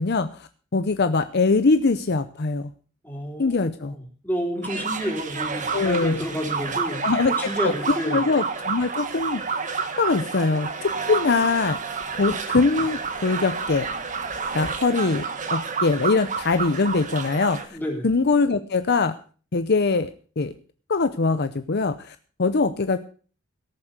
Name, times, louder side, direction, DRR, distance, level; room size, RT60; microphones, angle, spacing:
voice 1, 0.0-2.7 3.4-3.9 5.7-6.2 7.0-7.3 7.6-7.7 8.0-9.6 10.0-11.8 12.2-13.9 14.5-15.2 15.5-17.8 18.0-19.1 19.5-20.5 20.9-23.0, left 3 dB, 50° left, 10 dB, 0.7 m, -22 dB
voice 2, 3.0-8.2 17.7-18.1, equal, 10° left, 0 dB, 3.8 m, -30 dB
sound 1, 4.6-17.6, right 5 dB, 35° right, 1.6 m, -29 dB
18.0 x 7.2 x 6.6 m, 0.41 s
head